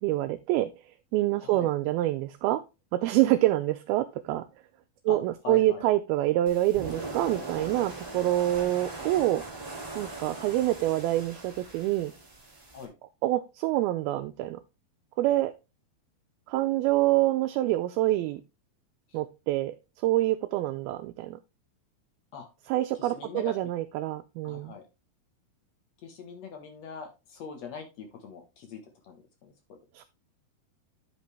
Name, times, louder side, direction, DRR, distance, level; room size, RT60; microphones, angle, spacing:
voice 1, 0.0-0.7 1.1-2.6 2.9-4.5 5.1-9.4 10.0-12.1 13.2-14.6 15.2-15.5 16.5-18.4 19.1-19.7 20.0-21.4 22.7-24.7 29.9-30.0, right 15 dB, 80° right, 9 dB, 2.3 m, -26 dB
voice 2, 5.4-5.8 12.7-12.9 22.3-22.5 23.0-23.6 24.4-24.8 26.0-29.8, left 6 dB, 60° left, 4 dB, 1.8 m, -42 dB
sound 1, 6.5-12.9, right 2 dB, 15° right, 1.5 m, -40 dB
10.5 x 5.2 x 3.3 m, 0.27 s
omnidirectional pair, 4.6 m